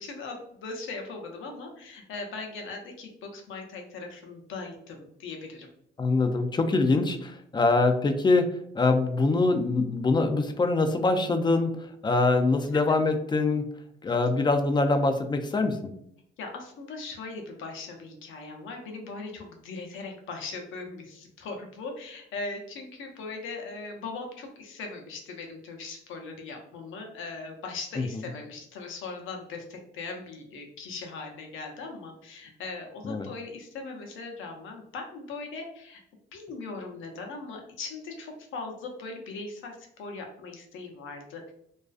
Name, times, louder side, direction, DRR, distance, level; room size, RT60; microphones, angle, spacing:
voice 1, 0.0-5.7 16.4-36.0 36.3-41.5, left 3 dB, 80° left, 3 dB, 0.6 m, -39 dB
voice 2, 6.0-8.5 8.7-13.7 14.0-15.9 28.0-28.1 33.0-33.3, left 3 dB, 20° left, 6 dB, 0.3 m, -24 dB
2.4 x 2.3 x 2.4 m, 0.72 s
cardioid pair, 90°, 20 cm